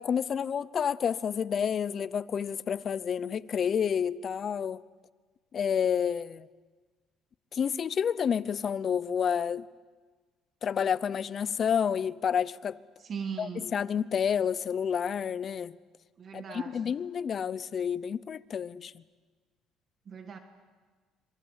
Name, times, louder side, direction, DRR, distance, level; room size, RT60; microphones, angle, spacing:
voice 1, 0.0-4.8 5.5-6.5 7.5-9.7 10.6-12.8 13.4-15.7 16.3-19.0, left 7 dB, 45° left, 0.7 m, -29 dB
voice 2, 13.0-13.7 16.2-16.9 20.1-20.4, right 6 dB, 40° right, 1.7 m, -39 dB
26.5 x 22.0 x 8.1 m
cardioid pair, 110°, 0 cm